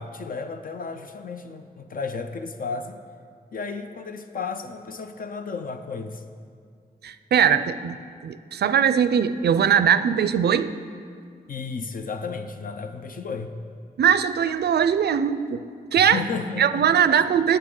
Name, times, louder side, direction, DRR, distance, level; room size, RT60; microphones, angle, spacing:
voice 1, 0.0-3.0 3.5-6.2 11.5-13.5 16.0-16.9, left 5 dB, 60° left, 7 dB, 0.5 m, -33 dB
voice 2, 7.0-8.0 8.2-10.8 14.0-15.6 15.9-16.2 16.6-17.6, right 8 dB, 80° right, 13 dB, 0.4 m, -20 dB
17.5 x 6.9 x 3.8 m, 2.2 s
wide cardioid pair, 150°, 17 cm